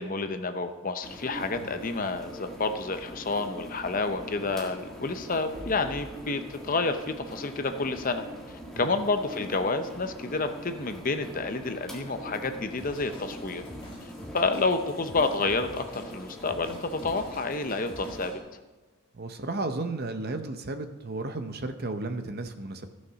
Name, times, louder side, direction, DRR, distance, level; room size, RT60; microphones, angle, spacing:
voice 1, 0.0-8.2 8.8-13.6 14.3-18.4, left 3 dB, 40° left, 8 dB, 0.7 m, -29 dB
sound 1, 1.0-18.3, equal, ahead, 1.7 m, -43 dB
Drum kit / Drum, 12.8-18.4, left 1 dB, 20° left, 1.6 m, -48 dB
voice 2, 19.1-22.9, right 2 dB, 45° right, 8 dB, 0.8 m, -34 dB
14.0 x 6.5 x 5.8 m, 1.2 s
head